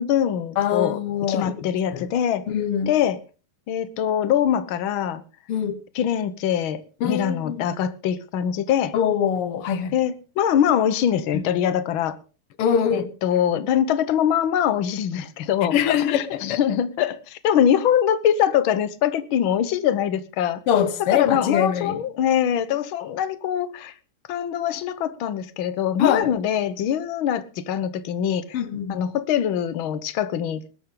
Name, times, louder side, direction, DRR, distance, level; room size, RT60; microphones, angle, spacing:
voice 1, 0.0-1.0 1.3-2.5 2.9-3.2 3.7-5.2 6.0-8.9 9.9-12.2 12.9-20.6 21.0-23.9 24.3-28.6 28.9-30.6, left 9 dB, 70° left, 1.9 m, -23 dB
voice 2, 0.6-2.1 2.5-2.9 5.5-5.8 7.0-7.7 8.9-9.9 11.3-11.4 12.6-13.1 15.7-16.6 20.7-22.0 26.0-26.3 28.5-29.1, left 8 dB, 85° left, 2.0 m, -23 dB
20.5 x 12.0 x 3.8 m
omnidirectional pair, 2.4 m